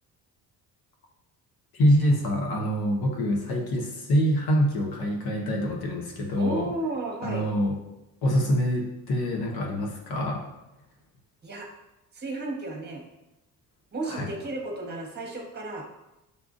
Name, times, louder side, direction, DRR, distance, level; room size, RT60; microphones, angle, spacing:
voice 1, 1.7-6.7 7.2-7.8 8.2-10.5 14.1-14.3, equal, 65° left, 1 dB, 1.0 m, -25 dB
voice 2, 6.4-7.5 11.4-11.7 12.1-13.0 13.9-15.9, right 2 dB, 25° right, 2 dB, 1.1 m, -33 dB
6.6 x 2.4 x 2.5 m, 0.95 s
supercardioid pair, 70°, 40 cm